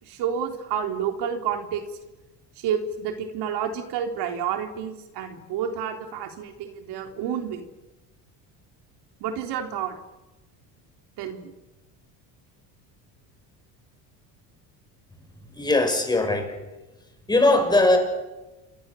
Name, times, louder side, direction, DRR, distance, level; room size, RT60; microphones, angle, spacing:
voice 1, 0.0-1.9 2.6-7.7 9.2-10.0 11.2-11.5, right 8 dB, 65° right, 3.9 m, -29 dB
voice 2, 15.5-16.6 17.3-18.0, left 2 dB, 10° left, 6.5 m, -20 dB
28.5 x 25.5 x 7.2 m
cardioid pair, 145°, 42 cm